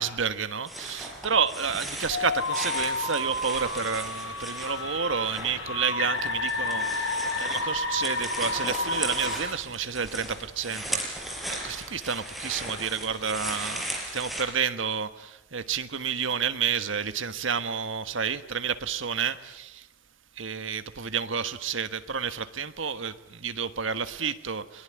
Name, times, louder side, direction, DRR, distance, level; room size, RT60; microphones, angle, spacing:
voice 1, 0.0-19.9 20.4-24.8, right 6 dB, 70° right, 1.4 m, -30 dB
sound 1, 0.7-5.5 5.8-14.4, right 1 dB, ahead, 4.9 m, -37 dB
sound 2, 2.1-9.4, left 2 dB, 70° left, 6.9 m, -31 dB
23.0 x 21.5 x 9.8 m
head